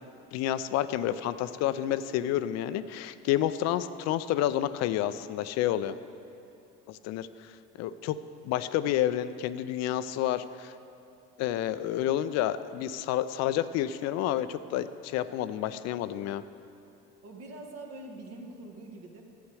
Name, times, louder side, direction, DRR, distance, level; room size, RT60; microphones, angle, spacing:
voice 1, 0.3-6.0 6.9-8.2 8.4-10.7 11.4-16.4, left 12 dB, 65° left, 13 dB, 0.5 m, -29 dB
voice 2, 17.2-19.2, right 2 dB, 55° right, 2 dB, 1.6 m, -44 dB
11.5 x 8.1 x 4.9 m, 2.7 s
hypercardioid pair, 70°, 29 cm